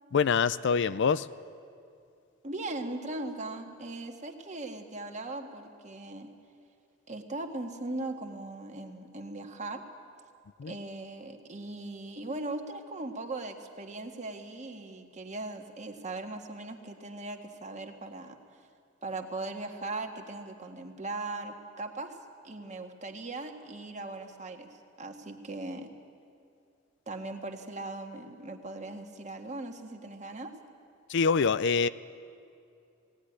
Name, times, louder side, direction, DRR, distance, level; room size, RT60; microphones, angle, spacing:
voice 1, 0.1-1.3 10.6-10.7 31.1-31.9, left 5 dB, 60° left, 0.5 m, -25 dB
voice 2, 2.4-6.3 7.1-9.8 10.7-18.7 19.0-22.2 22.4-24.7 25.0-25.9 27.1-30.5, right 2 dB, 35° right, 1.7 m, -39 dB
18.5 x 17.0 x 10.0 m
head